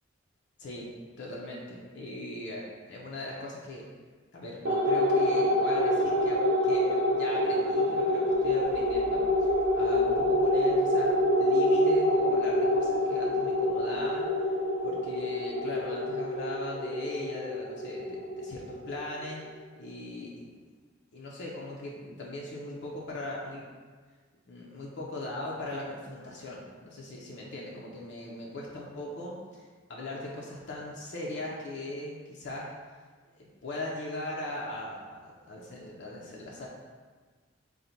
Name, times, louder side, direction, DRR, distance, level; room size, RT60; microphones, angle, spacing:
voice 1, 1.2-3.8 4.3-14.3 14.8-19.4 19.8-20.5 21.1-23.6 24.5-32.7 33.3-36.7, left 1 dB, 65° left, -4 dB, 0.5 m, -39 dB
sound 1, 4.7-19.4, left 1 dB, 55° right, 0.4 m, -26 dB
3.9 x 2.1 x 4.3 m, 1.5 s
head